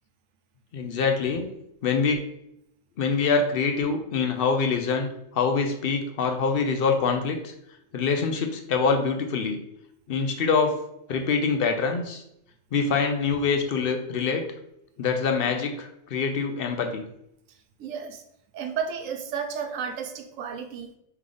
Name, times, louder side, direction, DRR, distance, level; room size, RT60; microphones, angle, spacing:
voice 1, 0.7-1.5 1.8-2.3 3.0-7.5 7.9-9.6 10.1-10.8 11.1-12.2 12.7-14.4 15.0-17.0, left 5 dB, 60° left, 5 dB, 0.6 m, -25 dB
voice 2, 17.5-18.2 18.5-20.9, right 7 dB, 85° right, 7 dB, 1.0 m, -33 dB
3.4 x 3.3 x 3.8 m, 0.77 s
omnidirectional pair, 1.3 m